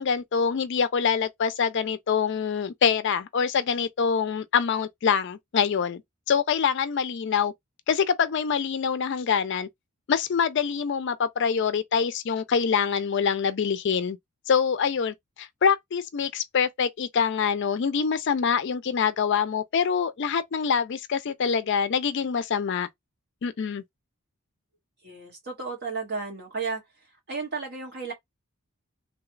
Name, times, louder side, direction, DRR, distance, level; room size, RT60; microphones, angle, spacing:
voice 1, 0.0-6.0 6.3-7.5 7.9-9.7 10.1-14.2 14.5-22.9 23.4-23.8, left 6 dB, 55° left, 0.4 m, -25 dB
voice 2, 25.0-26.8 27.3-28.1, right 4 dB, 50° right, 1.7 m, -33 dB
3.1 x 2.3 x 3.1 m
head